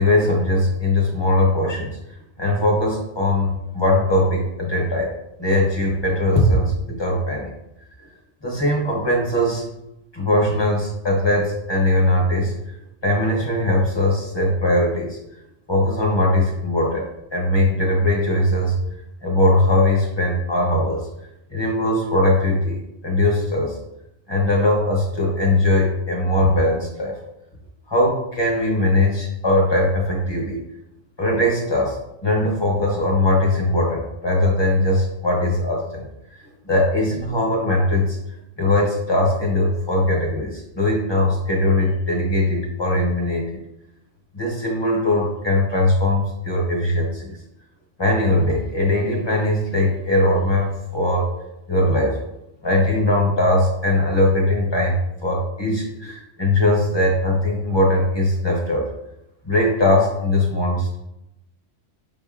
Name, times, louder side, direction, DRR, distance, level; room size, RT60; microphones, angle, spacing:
voice 1, 0.0-5.1 5.4-7.5 8.0-8.1 8.4-9.6 10.1-12.8 13.0-15.2 15.7-17.1 17.3-18.8 19.2-21.1 21.5-23.8 24.3-27.2 27.9-30.6 31.2-38.2 38.6-43.6 44.3-47.4 48.0-51.3 51.7-52.2 52.6-58.9 59.4-61.0, left 1 dB, 25° left, -2 dB, 0.7 m, -20 dB
5.0 x 3.5 x 2.4 m, 0.86 s
omnidirectional pair, 1.3 m